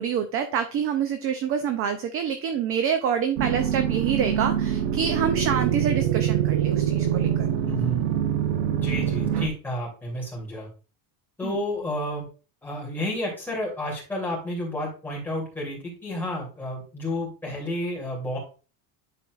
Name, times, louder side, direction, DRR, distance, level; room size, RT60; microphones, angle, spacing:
voice 1, 0.0-7.5 11.4-11.5, right 8 dB, 35° right, 8 dB, 0.4 m, -27 dB
sound 1, 3.4-9.5, right 10 dB, 75° right, 1.0 m, -24 dB
voice 2, 7.6-8.0 8.8-10.7 11.4-12.3 12.6-18.4, left 1 dB, 5° left, -3 dB, 2.6 m, -31 dB
10.0 x 4.2 x 2.3 m, 0.35 s
cardioid pair, 170°, 42 cm